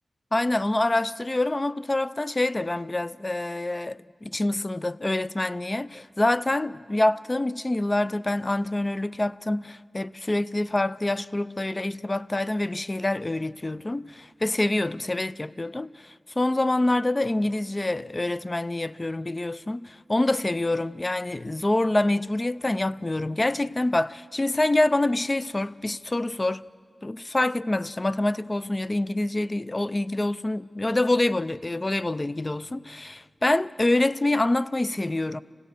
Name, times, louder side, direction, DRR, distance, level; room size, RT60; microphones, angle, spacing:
voice 1, 0.3-26.7 27.0-35.4, left 2 dB, 30° left, 0.5 m, -26 dB
27.0 x 16.5 x 6.6 m
cardioid pair, 55°, 0 cm